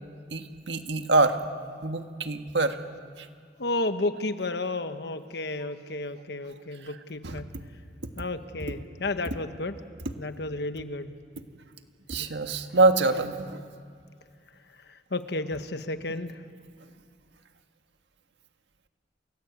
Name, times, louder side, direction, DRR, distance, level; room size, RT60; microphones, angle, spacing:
voice 1, 0.3-1.4 1.8-2.8 7.2-7.4 12.1-13.6, right 3 dB, 85° right, 7 dB, 1.6 m, -24 dB
voice 2, 3.6-7.5 8.2-9.8 10.2-11.1 12.1-12.3 15.1-16.4, left 2 dB, 65° left, 10 dB, 1.2 m, -32 dB
28.5 x 19.5 x 8.2 m, 2.2 s
head